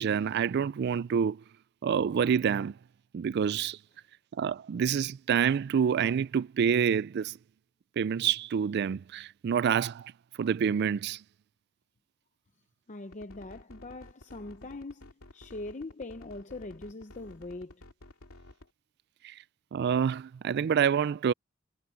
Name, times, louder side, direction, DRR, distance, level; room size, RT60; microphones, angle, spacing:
voice 1, 0.0-1.4 1.8-2.8 3.1-3.8 4.4-7.4 8.0-10.1 10.4-11.2 19.2-19.3 19.7-21.3, right 7 dB, 50° right, 0.3 m, -27 dB
voice 2, 12.9-17.8, left 2 dB, 35° left, 0.7 m, -42 dB
sound 1, 13.1-18.7, left 1 dB, 85° left, 2.6 m, -52 dB
head